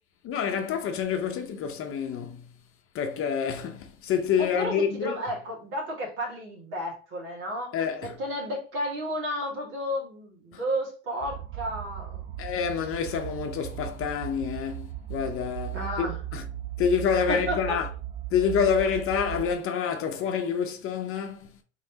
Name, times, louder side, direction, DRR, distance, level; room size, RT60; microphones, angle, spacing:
voice 1, 0.2-2.5 2.9-5.2 7.7-8.2 10.5-10.6 12.4-16.4 16.8-17.9 18.3-21.5, left 7 dB, 40° left, 0.7 m, -28 dB
voice 2, 4.4-7.7 8.0-12.5 15.7-16.2 17.3-17.8, equal, 60° right, 2.1 m, -32 dB
sound 1, 11.2-19.5, right 13 dB, 25° right, 0.3 m, -37 dB
4.0 x 3.2 x 2.8 m
supercardioid pair, 105°, 34 cm